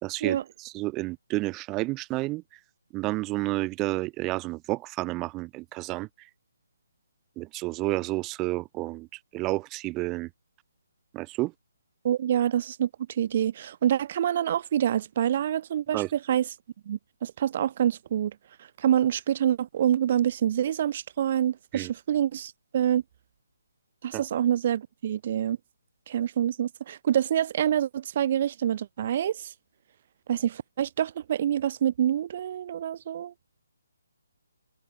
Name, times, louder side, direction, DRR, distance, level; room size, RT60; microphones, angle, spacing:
voice 1, 0.0-2.4 2.9-6.3 7.4-9.1 9.3-10.3 11.1-11.5 15.9-16.1 21.7-21.9 24.1-24.3, right 20 dB, 15° right, 1.2 m, -30 dB
voice 2, 12.0-16.4 16.9-18.3 18.8-23.0 24.0-25.6 26.1-29.5 30.3-33.3, right 10 dB, 35° right, 2.4 m, -26 dB
hypercardioid pair, 160°, 0 cm